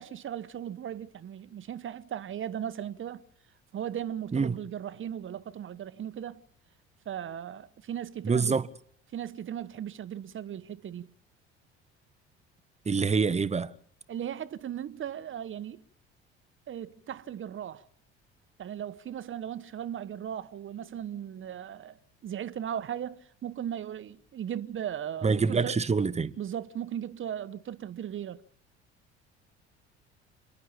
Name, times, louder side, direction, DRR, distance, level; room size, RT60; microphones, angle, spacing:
voice 1, 0.0-3.2 3.7-6.4 7.0-8.6 9.1-11.1 14.1-15.8 16.7-17.9 18.6-22.0 22.2-25.8 26.4-28.4, right 9 dB, 40° right, 1.2 m, -37 dB
voice 2, 8.2-8.7 12.9-13.7 25.2-26.3, right 5 dB, 20° right, 1.1 m, -26 dB
29.0 x 11.0 x 9.0 m
figure-of-eight pair, 60°, 33 cm